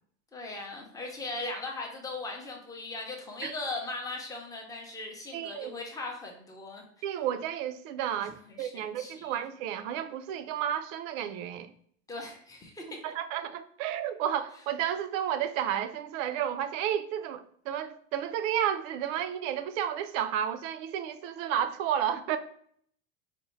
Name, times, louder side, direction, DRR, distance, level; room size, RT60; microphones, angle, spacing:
voice 1, 0.3-6.8 8.1-9.4 12.1-13.0, left 2 dB, 10° left, 0.5 m, -39 dB
voice 2, 5.3-5.7 7.0-11.7 13.0-22.4, right 10 dB, 70° right, 0.5 m, -32 dB
4.1 x 2.1 x 3.0 m
supercardioid pair, 135°, 40 cm